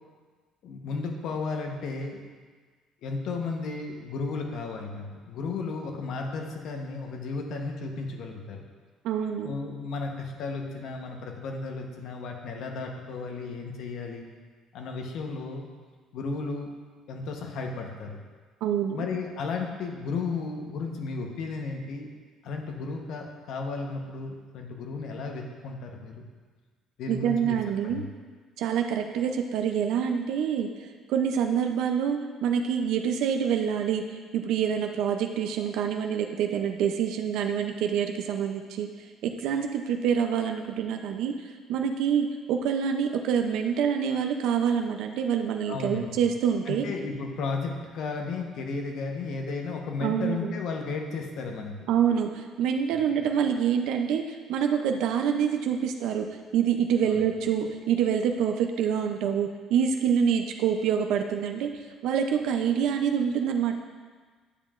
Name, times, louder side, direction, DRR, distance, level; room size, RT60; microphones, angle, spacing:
voice 1, 0.6-2.2 3.0-8.6 9.4-14.3 14.7-15.7 16.1-16.7 17.1-18.2 18.9-22.1 22.4-26.3 27.0-27.6 27.8-28.0 45.7-46.2 46.6-51.7 52.9-53.0 57.0-57.2, left 4 dB, 60° left, 2 dB, 1.0 m, -34 dB
voice 2, 9.0-9.5 18.6-19.0 27.1-28.0 28.6-30.7 31.1-38.9 39.2-41.3 41.7-46.9 50.0-50.5 51.9-56.3 56.5-61.7 62.0-63.8, right 8 dB, 70° right, 4 dB, 0.5 m, -26 dB
10.0 x 7.4 x 2.5 m, 1.5 s
cardioid pair, 165°, 0 cm